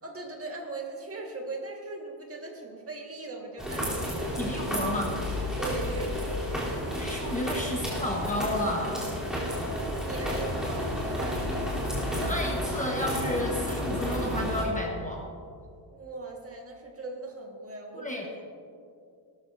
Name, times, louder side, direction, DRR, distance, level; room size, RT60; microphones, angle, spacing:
voice 1, 0.0-4.5 5.6-6.8 9.5-11.7 15.9-18.3, right 2 dB, 30° right, 0 dB, 1.7 m, -39 dB
sound 1, 3.6-14.6, equal, ahead, 3.3 m, -31 dB
voice 2, 4.4-5.1 7.0-9.0 12.2-15.2 17.9-18.2, left 1 dB, 15° left, -1 dB, 1.2 m, -31 dB
sound 2, 4.8-7.6, left 7 dB, 50° left, 0.6 m, -39 dB
18.5 x 13.5 x 2.7 m, 2.4 s
cardioid pair, 155°, 49 cm